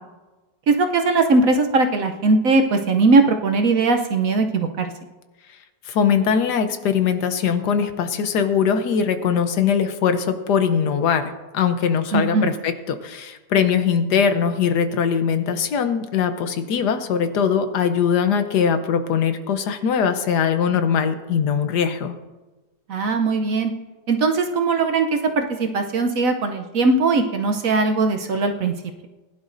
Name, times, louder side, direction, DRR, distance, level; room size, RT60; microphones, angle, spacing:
voice 1, 0.7-4.9 12.1-12.5 22.9-23.7 24.1-28.7, right 3 dB, 60° right, 5 dB, 1.0 m, -19 dB
voice 2, 5.9-22.1, left 7 dB, 70° left, 9 dB, 1.3 m, -21 dB
20.0 x 11.0 x 2.6 m, 1.2 s
omnidirectional pair, 2.0 m